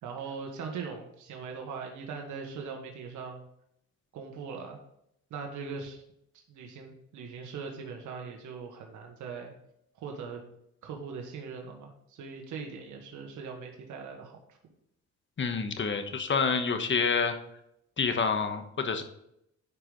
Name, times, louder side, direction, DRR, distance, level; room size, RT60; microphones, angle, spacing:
voice 1, 0.0-3.4 4.1-4.8 5.3-6.0 6.5-9.5 9.9-10.4 10.8-14.6, right 5 dB, 75° right, 2 dB, 1.5 m, -40 dB
voice 2, 15.4-17.3 18.0-19.0, left 5 dB, 40° left, 7 dB, 1.3 m, -28 dB
10.5 x 4.9 x 4.0 m, 0.77 s
cardioid pair, 90°, 30 cm